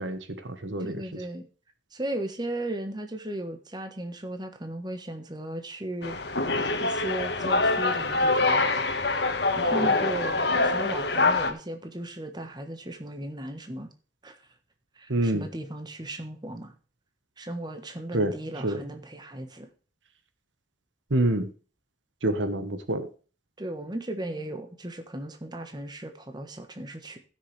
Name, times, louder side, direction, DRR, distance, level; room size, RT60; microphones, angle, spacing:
voice 1, 0.0-1.2 15.1-15.5 18.1-18.3 18.6-18.8 21.1-21.5 22.2-23.1, right 1 dB, 85° right, 10 dB, 1.4 m, -27 dB
voice 2, 0.8-1.4 1.9-6.2 6.8-8.7 9.5-13.9 14.2-14.4 14.9-16.7 17.4-19.7 23.6-27.2, right 1 dB, 25° right, 6 dB, 1.4 m, -36 dB
sound 1, 6.0-11.5, left 3 dB, 60° left, 1.5 m, -25 dB
15.5 x 6.6 x 3.4 m, 0.37 s
head